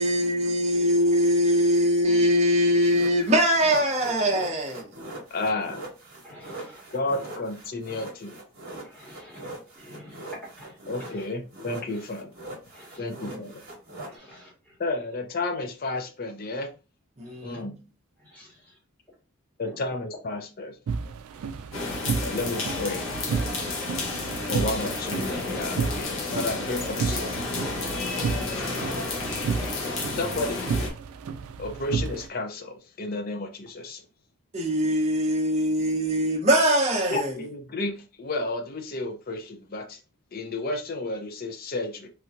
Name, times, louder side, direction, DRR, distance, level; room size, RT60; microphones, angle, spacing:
voice 1, 0.0-4.8 13.2-13.4 17.2-17.6 34.5-37.3, equal, 30° right, 0.7 m, -22 dB
sound 1, 2.8-11.3 11.5-14.1, right 2 dB, 50° right, 1.2 m, -42 dB
voice 2, 5.3-5.8 6.9-8.4 10.9-12.3 13.0-13.5 14.8-16.7 17.4-17.8 19.6-20.8 22.2-23.1 24.5-27.5 28.1-28.6 30.1-30.6 31.6-34.0 37.1-40.0 40.3-42.1, left 2 dB, 45° left, 0.5 m, -32 dB
voice 3, 6.2-6.8 8.8-9.5 9.7-10.3 10.6-11.2 11.9-12.0 12.7-13.0 14.1-14.5 17.4-17.5 18.2-18.5 19.6-19.8 21.3-21.6, equal, 5° left, 1.5 m, -49 dB
sound 2, 20.9-32.3, right 5 dB, 90° right, 0.3 m, -32 dB
sound 3, 21.7-30.9, left 3 dB, 65° left, 0.9 m, -31 dB
3.2 x 2.9 x 2.4 m
head